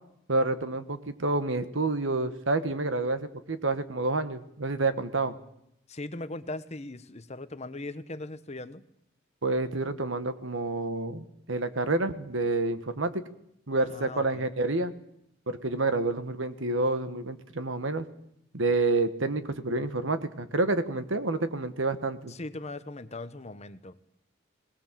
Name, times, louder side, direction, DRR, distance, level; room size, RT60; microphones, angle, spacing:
voice 1, 0.3-5.3 9.4-13.2 13.7-14.9 15.5-18.1 18.5-22.3, right 2 dB, 70° right, 11 dB, 1.5 m, -28 dB
voice 2, 5.9-8.8 13.8-14.5 22.3-24.0, left 2 dB, 35° left, 12 dB, 1.0 m, -39 dB
21.0 x 19.0 x 7.5 m, 0.76 s
head